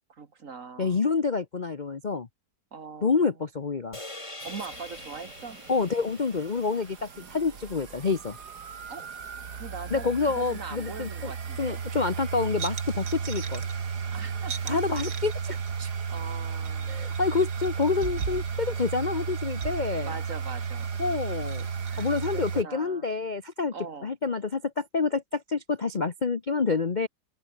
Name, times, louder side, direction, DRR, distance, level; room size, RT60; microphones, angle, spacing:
voice 1, 0.1-1.1 2.7-3.3 4.4-5.6 8.9-9.1 9.5-10.1 10.4-11.8 14.1-14.8 16.1-17.2 20.0-20.9 21.9-23.1 23.7-24.1, right 5 dB, 45° right, 2.0 m, -41 dB
voice 2, 0.8-2.3 3.0-4.0 5.7-8.4 9.9-11.3 11.6-13.6 14.7-15.9 16.9-20.1 21.0-21.7 22.0-23.7 24.0-27.1, left 4 dB, 35° left, 0.9 m, -28 dB
sound 1, 3.9-8.3, left 2 dB, 15° left, 2.8 m, -45 dB
sound 2, 4.4-22.6, right 6 dB, 65° right, 2.4 m, -34 dB
open air
omnidirectional pair, 1.9 m